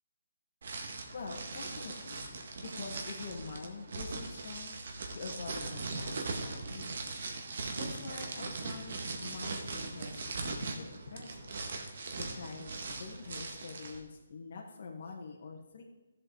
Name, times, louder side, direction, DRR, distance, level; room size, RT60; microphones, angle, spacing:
sound 1, 0.6-14.0, right 3 dB, 55° right, 1.8 m, -40 dB
voice 1, 1.1-4.8 5.1-7.1 7.7-11.5 12.1-15.8, left 4 dB, 50° left, -1 dB, 1.9 m, -46 dB
13.5 x 7.5 x 4.9 m, 1.1 s
hypercardioid pair, 165°, 0 cm